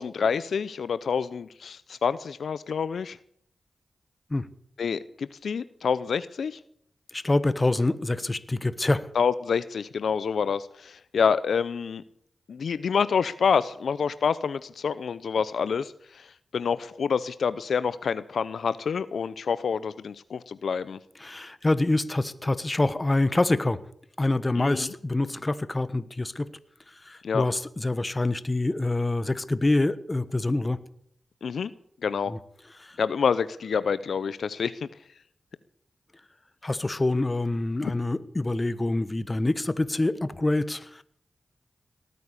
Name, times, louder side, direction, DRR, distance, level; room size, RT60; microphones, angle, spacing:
voice 1, 0.0-3.2 4.8-6.6 9.1-12.0 12.5-16.3 16.5-21.0 24.6-24.9 27.2-27.4 31.4-31.7 32.0-32.3 33.0-34.9 37.8-37.9, left 6 dB, 85° left, 16 dB, 0.6 m, -27 dB
voice 2, 7.1-9.1 21.2-23.8 24.2-26.5 26.9-30.8 32.3-32.4 32.8-33.0 36.6-41.0, left 2 dB, 30° left, 15 dB, 1.2 m, -26 dB
18.5 x 9.3 x 8.3 m, 0.66 s
cardioid pair, 55°, 0 cm